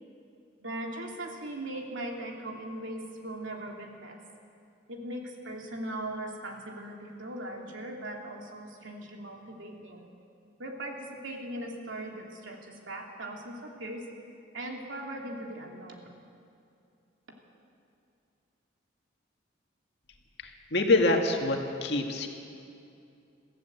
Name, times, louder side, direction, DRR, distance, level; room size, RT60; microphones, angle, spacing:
voice 1, 0.6-4.2 4.9-10.0 10.6-14.1 14.5-16.1, right 1 dB, 80° right, 0 dB, 2.8 m, -39 dB
voice 2, 20.4-22.3, left 2 dB, 55° left, 3 dB, 2.0 m, -26 dB
22.5 x 15.0 x 8.1 m, 2.6 s
head